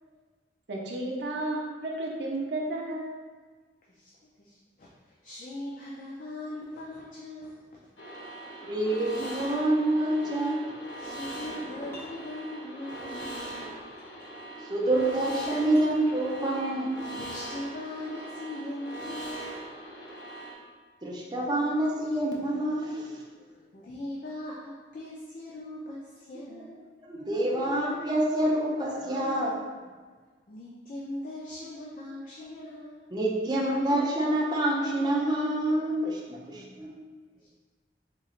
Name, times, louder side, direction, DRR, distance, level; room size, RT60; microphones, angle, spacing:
voice 1, 0.7-3.1, right 1 dB, 70° right, -2 dB, 0.5 m, -32 dB
voice 2, 4.4-7.7 11.0-13.7 17.1-19.7 23.7-26.7 30.5-33.1 37.3-37.5, left 1 dB, 45° left, -5 dB, 0.4 m, -40 dB
sound 1, 8.0-20.5, right 1 dB, 90° left, 0.7 m, -41 dB
voice 3, 8.6-10.6 14.6-17.1 21.0-23.2 27.1-29.5 33.1-36.9, right 1 dB, 20° right, -3 dB, 0.4 m, -27 dB
sound 2, 11.2-12.2 12.9-14.5 14.9-16.3, equal, 15° left, 0.7 m, -47 dB
3.7 x 3.0 x 2.4 m, 1.4 s
head